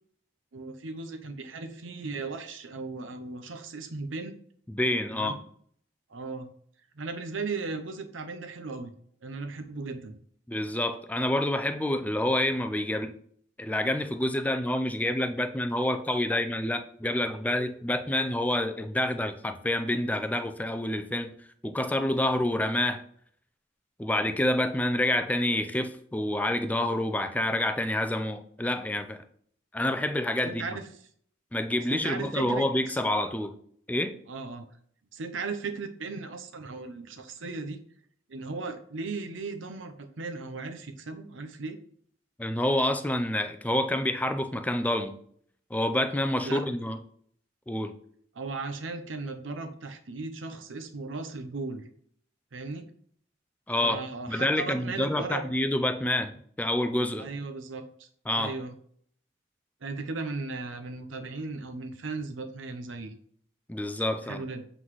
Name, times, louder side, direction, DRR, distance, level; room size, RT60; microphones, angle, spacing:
voice 1, 0.5-4.3 5.1-5.4 6.1-6.5 6.9-8.9 9.2-10.2 30.5-30.9 31.9-33.0 34.3-34.7 35.1-37.8 38.3-41.8 46.4-46.6 48.3-51.8 52.5-52.8 53.8-55.4 57.2-58.1 58.4-58.7 59.8-63.1 64.3-64.6, right 3 dB, 85° right, 7 dB, 0.7 m, -36 dB
voice 2, 4.7-5.4 10.5-13.1 13.6-21.3 21.6-23.0 24.0-29.2 29.7-30.6 31.5-33.5 33.9-34.1 42.4-45.1 45.7-47.0 47.7-47.9 53.7-54.0 54.3-57.3 58.3-58.5 63.7-64.4, left 1 dB, 10° left, 7 dB, 0.4 m, -28 dB
7.8 x 3.9 x 3.1 m, 0.62 s
head